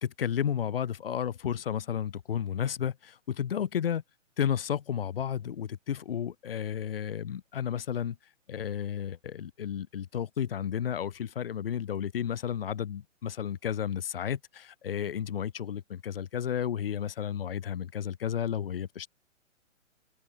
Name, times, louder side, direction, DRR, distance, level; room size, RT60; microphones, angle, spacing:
voice 1, 0.0-4.0 4.4-8.2 8.5-19.1, left 9 dB, 50° left, 1.4 m, -32 dB
open air
figure-of-eight pair, 130°, 38 cm